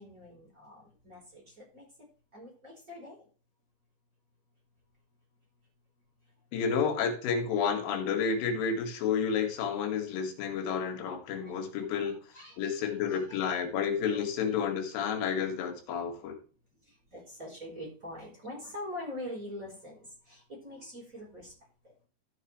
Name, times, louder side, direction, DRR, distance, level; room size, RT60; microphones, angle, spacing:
voice 1, 0.0-1.9 2.3-3.2 11.4-11.5 12.0-13.2 14.1-14.2 16.9-21.5, left 1 dB, 20° right, -4 dB, 4.1 m, -44 dB
voice 2, 6.5-12.2 12.6-16.4, left 6 dB, 90° left, 4 dB, 4.4 m, -30 dB
14.0 x 6.7 x 3.2 m, 0.39 s
omnidirectional pair, 5.6 m